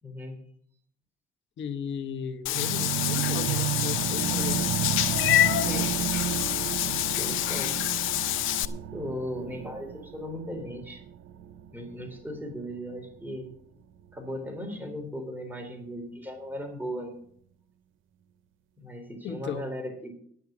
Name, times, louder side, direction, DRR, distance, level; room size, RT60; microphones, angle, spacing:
voice 1, 0.0-0.4 3.6-3.7 5.6-5.9 7.2-7.8 8.9-11.0 11.7-13.5 14.1-17.2 18.8-20.2, equal, 10° right, 3 dB, 3.7 m, -37 dB
voice 2, 1.6-4.7 19.2-19.7, left 7 dB, 65° left, 8 dB, 1.2 m, -36 dB
Meow / Water / Bathtub (filling or washing), 2.5-8.7, left 14 dB, 85° left, 0.6 m, -27 dB
sound 1, 2.5-12.5, right 11 dB, 85° right, 0.7 m, -32 dB
11.0 x 9.1 x 6.2 m, 0.63 s
cardioid pair, 90°, 20 cm